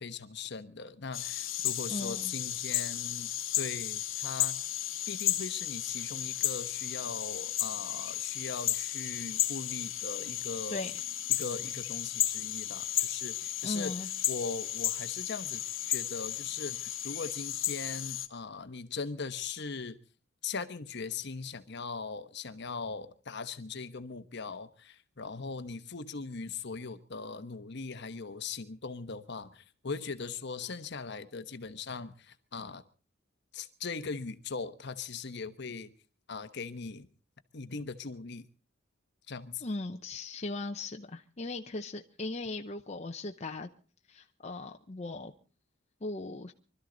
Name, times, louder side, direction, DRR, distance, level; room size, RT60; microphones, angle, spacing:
voice 1, 0.0-4.6 5.1-10.9 11.3-13.9 14.3-20.0 20.4-32.8 33.5-35.9 36.3-37.1 37.5-38.5 39.3-39.6, left 4 dB, 60° left, 1.0 m, -40 dB
sound 1, 1.1-18.3, left 12 dB, 75° left, 1.3 m, -34 dB
voice 2, 1.9-2.3 10.7-10.9 13.6-14.1 39.6-43.7 44.1-45.3 46.0-46.5, left 2 dB, 35° left, 0.8 m, -38 dB
24.5 x 13.0 x 3.9 m
head